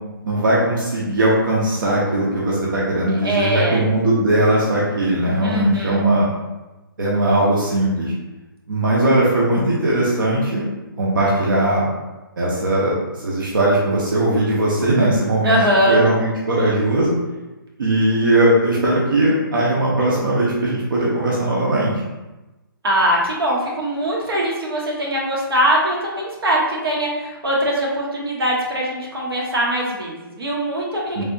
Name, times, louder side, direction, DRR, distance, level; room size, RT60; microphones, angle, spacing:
voice 1, 0.2-6.3 7.0-8.1 8.7-10.6 11.0-11.9 12.4-12.9 13.2-15.6 15.9-17.1 17.8-21.9 31.2-31.3, right 1 dB, 60° right, -6 dB, 0.7 m, -19 dB
voice 2, 3.2-3.8 5.4-6.0 15.4-16.0 22.8-31.2, right 1 dB, 85° right, -3 dB, 1.0 m, -21 dB
3.3 x 2.7 x 2.6 m, 1.1 s
hypercardioid pair, 180°, 12 cm